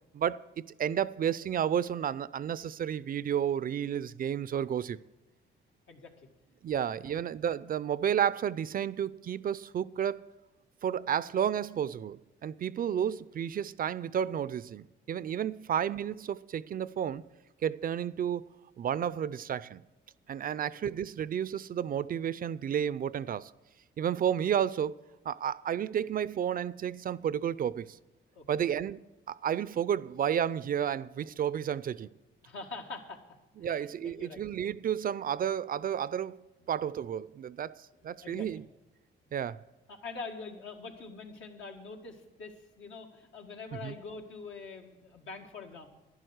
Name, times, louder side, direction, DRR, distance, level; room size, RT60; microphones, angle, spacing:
voice 1, 0.1-5.0 6.6-10.2 10.8-17.2 17.6-18.5 18.8-19.8 20.3-23.5 24.0-25.0 25.3-28.0 28.5-29.0 29.3-32.1 33.6-36.4 36.7-38.6 39.3-39.6 43.8-43.9, right 9 dB, 45° right, 0.4 m, -31 dB
voice 2, 5.9-6.3 6.7-6.8 20.6-20.7 28.3-28.4 32.4-33.2 33.6-34.4 38.2-38.5 39.9-45.9, left 4 dB, 75° left, 2.0 m, -44 dB
11.0 x 11.0 x 6.4 m
cardioid pair, 90°, 20 cm